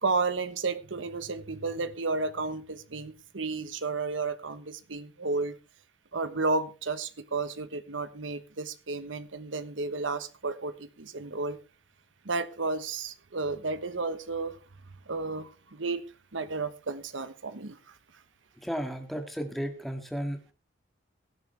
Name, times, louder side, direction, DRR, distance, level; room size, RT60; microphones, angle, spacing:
voice 1, 0.0-5.6 6.1-11.6 12.2-14.6 15.1-16.0 16.3-17.8, right 3 dB, 90° right, 12 dB, 1.2 m, -32 dB
voice 2, 18.6-20.5, equal, ahead, 5 dB, 2.0 m, -34 dB
17.5 x 10.5 x 3.4 m, 0.33 s
head